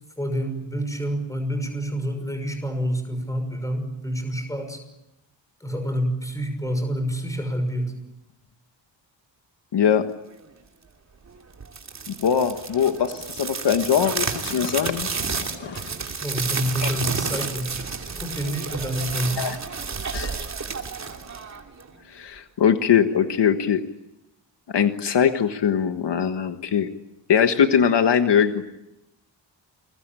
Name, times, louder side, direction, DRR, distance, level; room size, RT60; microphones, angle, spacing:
voice 1, 0.2-4.8 5.6-7.9 16.2-17.9 18.2-19.5, equal, 5° left, 6 dB, 5.9 m, -28 dB
voice 2, 9.7-10.0 12.2-15.1 15.5-15.8 16.8-16.9 19.4-19.6 20.1-20.4 22.1-23.8 24.7-26.9 27.3-28.6, left 8 dB, 65° left, 7 dB, 1.5 m, -21 dB
sound 1, 11.6-22.0, right 5 dB, 35° right, 2.9 m, -31 dB
29.0 x 21.5 x 9.0 m, 0.91 s
wide cardioid pair, 165°, 44 cm